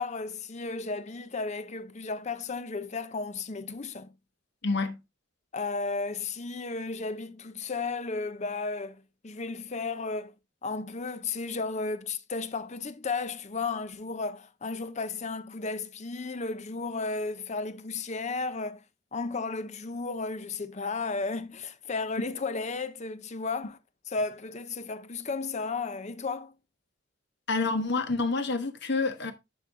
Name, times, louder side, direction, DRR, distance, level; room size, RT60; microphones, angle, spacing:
voice 1, 0.0-4.1 5.5-10.3 10.6-18.8 19.1-23.8 24.1-26.6, left 4 dB, 35° left, 0.7 m, -34 dB
voice 2, 4.6-5.0 27.5-29.3, left 3 dB, 55° left, 1.3 m, -28 dB
11.0 x 4.5 x 3.6 m
head